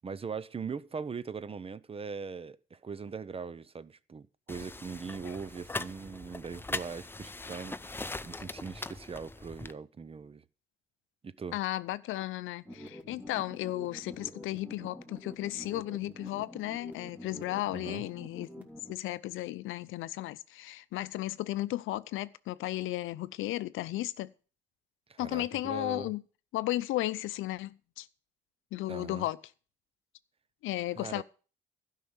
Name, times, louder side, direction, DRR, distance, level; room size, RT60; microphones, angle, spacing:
voice 1, 0.0-10.4 11.2-11.6 17.7-18.0 25.1-26.1 28.9-29.3 30.9-31.2, right 5 dB, 30° right, 0.6 m, -41 dB
sound 1, 4.5-9.7, left 2 dB, 10° left, 0.5 m, -40 dB
voice 2, 11.5-24.3 25.2-26.2 26.5-28.1 28.7-29.4 30.6-31.2, left 16 dB, 85° left, 0.6 m, -34 dB
sound 2, 12.6-18.9, equal, 10° right, 2.4 m, -47 dB
12.5 x 5.6 x 8.1 m
cardioid pair, 90°, 20 cm